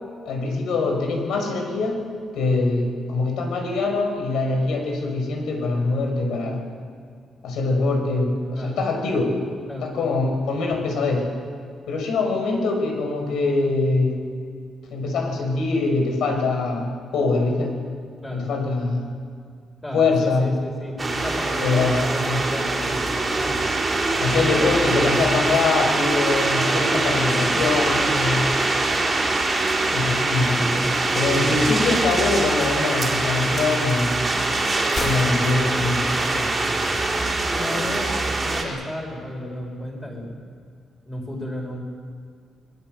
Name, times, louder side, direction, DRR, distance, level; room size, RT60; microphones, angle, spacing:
voice 1, 0.2-2.0 2.3-6.6 7.4-9.3 9.8-11.3 11.9-14.2 14.9-17.8 18.3-19.1 19.9-20.5 21.6-22.0 22.3-22.4 24.2-28.5 29.9-30.9 31.1-34.2 35.0-36.4, left 3 dB, 80° left, 3 dB, 6.1 m, -23 dB
voice 2, 9.7-10.1 18.2-18.5 19.8-23.6 24.1-24.7 26.6-26.7 36.2-36.4 37.5-38.2 38.4-40.4 41.1-41.8, left 1 dB, 10° left, 0 dB, 5.5 m, -33 dB
sound 1, 21.0-38.6, right 2 dB, 15° right, 3.9 m, -23 dB
Gunshot gunfire, 34.8-36.8, left 2 dB, 30° left, 2.7 m, -33 dB
25.5 x 20.5 x 8.0 m, 2.2 s
cardioid pair, 165°, 0 cm